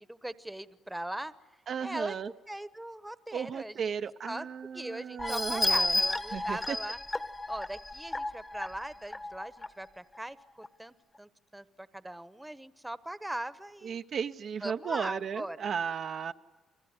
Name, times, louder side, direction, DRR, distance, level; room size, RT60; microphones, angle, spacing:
voice 1, 0.1-1.3 1.8-2.1 2.5-3.9 4.3-4.5 4.7-7.0 7.5-14.0 14.6-15.6, right 1 dB, 10° right, 14 dB, 1.1 m, -40 dB
voice 2, 1.7-2.3 3.3-6.0 6.3-6.8 13.8-16.3, right 7 dB, 55° right, 8 dB, 0.8 m, -35 dB
sound 1, 5.2-9.7 10.2-10.3 10.6-10.7, left 2 dB, 15° left, 1.2 m, -32 dB
29.5 x 20.5 x 9.6 m, 1.3 s
cardioid pair, 90°, 0 cm